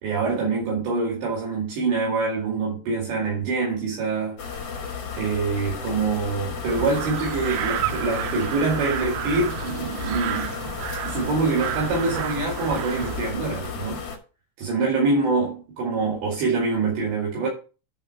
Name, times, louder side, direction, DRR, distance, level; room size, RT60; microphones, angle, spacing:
voice 1, 0.0-4.4 5.2-10.8 11.0-14.0 14.6-17.5, right 4 dB, 65° right, 4.2 m, -25 dB
sound 1, 4.4-14.2, left 6 dB, 60° left, 1.5 m, -33 dB
sound 2, 6.7-13.3, right 11 dB, 80° right, 2.6 m, -31 dB
11.0 x 4.2 x 5.7 m
omnidirectional pair, 5.8 m